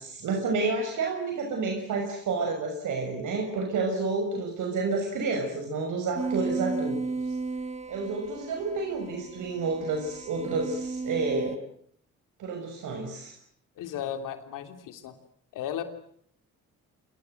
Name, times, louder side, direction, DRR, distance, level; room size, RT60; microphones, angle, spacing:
voice 1, 0.2-7.0 7.9-11.6 12.4-13.3, right 3 dB, 75° right, 2 dB, 6.3 m, -30 dB
sound 1, 6.2-11.6, right 3 dB, 20° right, 2.7 m, -34 dB
voice 2, 13.8-15.2 15.5-15.8, left 10 dB, 85° left, 8 dB, 3.3 m, -35 dB
27.0 x 23.5 x 8.0 m, 0.66 s
supercardioid pair, 65°, 31 cm